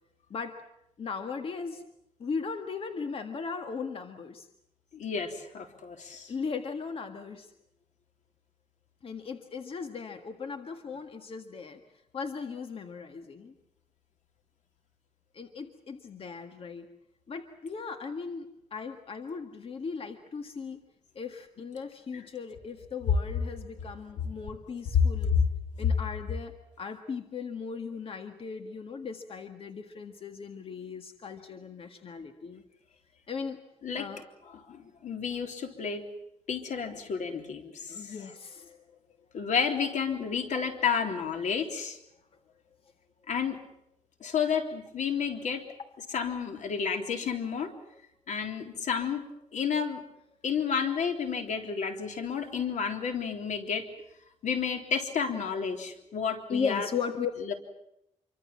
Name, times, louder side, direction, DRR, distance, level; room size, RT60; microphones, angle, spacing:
voice 1, 1.0-1.8 2.2-4.5 6.3-7.5 9.0-11.8 12.1-13.5 15.3-16.9 17.3-20.8 21.2-25.3 25.8-32.6 33.3-33.6 34.0-34.2 37.9-38.8 45.1-45.2 46.9-47.0 55.9-57.3, left 5 dB, 50° left, 6 dB, 1.8 m, -37 dB
voice 2, 4.9-6.3 25.3-25.4 33.8-34.1 34.5-36.0 36.5-38.2 39.3-42.0 43.3-43.6 44.2-45.6 46.1-47.7 48.3-49.2 49.5-50.0 50.4-53.9 54.4-56.9 57.5-57.6, left 6 dB, 85° left, 5 dB, 3.6 m, -31 dB
27.0 x 24.5 x 7.5 m, 0.81 s
wide cardioid pair, 145°, 12 cm